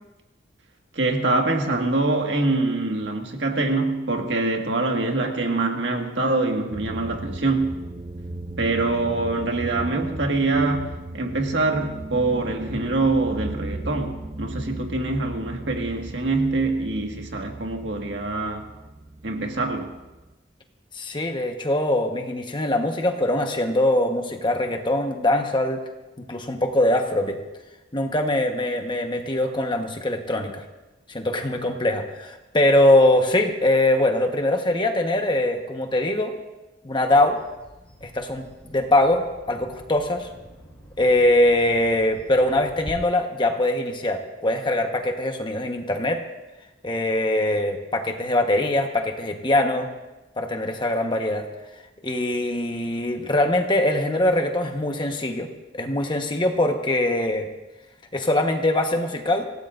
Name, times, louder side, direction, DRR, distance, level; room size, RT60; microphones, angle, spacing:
voice 1, 0.9-7.8 8.6-18.7 19.2-19.9, right 2 dB, 65° right, 1.8 m, -24 dB
sound 1, 6.7-20.3, right 1 dB, 25° right, 0.5 m, -36 dB
voice 2, 20.9-25.8 26.3-27.4 27.9-30.6 31.1-36.3 36.8-37.4 38.0-40.3 41.0-46.2 46.8-49.9 50.4-51.4 52.0-55.5 55.7-57.5 58.1-59.4, left 1 dB, 25° left, 1.2 m, -22 dB
Bird vocalization bird call bird song, 37.2-42.9, equal, 5° left, 4.7 m, -46 dB
26.0 x 17.0 x 2.6 m
head